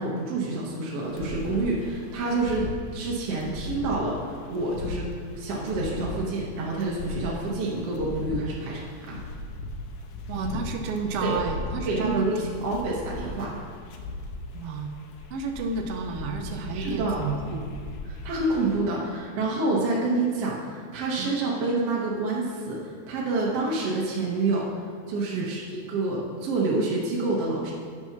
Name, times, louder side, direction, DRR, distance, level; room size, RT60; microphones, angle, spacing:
voice 1, 0.0-2.7 2.9-5.1 5.4-9.2 11.2-11.4 11.9-13.6 16.7-17.3 18.1-24.7 25.1-27.7, right 2 dB, 60° right, -4 dB, 2.0 m, -28 dB
sound 1, 1.0-18.8, left 2 dB, 85° left, 2.3 m, -38 dB
voice 2, 10.3-12.5 14.5-14.9 15.3-17.7 21.2-21.3 25.3-25.5, right 4 dB, 90° right, 4 dB, 1.3 m, -31 dB
8.6 x 6.0 x 5.8 m, 2.1 s
omnidirectional pair, 3.6 m